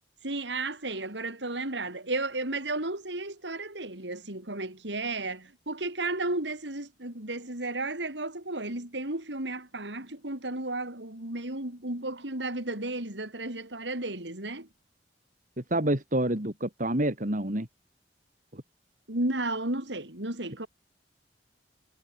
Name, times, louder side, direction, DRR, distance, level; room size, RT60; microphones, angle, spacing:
voice 1, 0.2-14.7 19.1-20.7, right 2 dB, 85° right, 5.7 m, -33 dB
voice 2, 15.6-17.7 18.5-18.6, right 1 dB, 50° right, 4.3 m, -28 dB
head